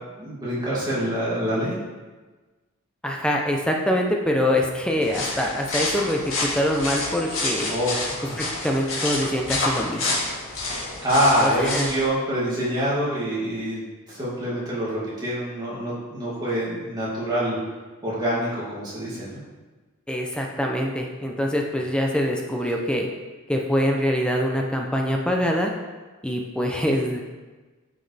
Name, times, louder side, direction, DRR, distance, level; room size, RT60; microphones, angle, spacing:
voice 1, 0.2-1.8 7.7-8.4 11.0-17.6 18.0-19.4, equal, 20° right, -8 dB, 2.6 m, -25 dB
voice 2, 3.0-7.7 8.4-10.2 11.4-11.9 20.1-23.1 23.5-25.7 26.2-27.2, equal, 5° left, 0 dB, 0.6 m, -24 dB
sound 1, 5.0-12.0, left 2 dB, 60° left, 2.3 m, -28 dB
9.3 x 6.2 x 3.4 m, 1.3 s
head